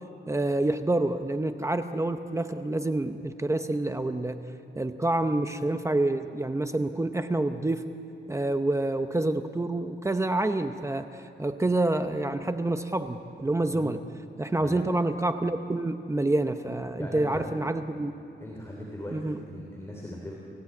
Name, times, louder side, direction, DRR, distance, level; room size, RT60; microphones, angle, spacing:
voice 1, 0.3-4.4 4.8-7.8 8.3-14.0 14.4-18.1 19.1-19.4, right 2 dB, 15° right, 8 dB, 0.7 m, -27 dB
voice 2, 17.0-17.5 18.4-20.3, left 1 dB, 15° left, -2 dB, 3.1 m, -39 dB
29.5 x 16.0 x 8.5 m, 2.8 s
wide cardioid pair, 145°, 19 cm